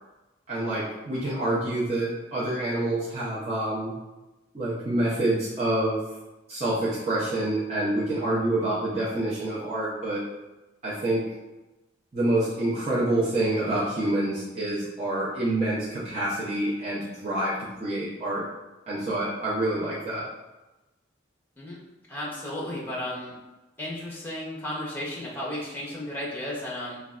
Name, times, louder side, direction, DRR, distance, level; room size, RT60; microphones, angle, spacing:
voice 1, 0.5-4.0 4.5-6.0 6.5-10.2 10.8-11.2 12.1-18.4 18.9-20.3, right 1 dB, 35° right, -9 dB, 0.6 m, -27 dB
voice 2, 22.1-23.3 23.8-27.0, left 1 dB, 10° left, -6 dB, 0.7 m, -34 dB
3.1 x 2.3 x 2.4 m, 1.1 s
head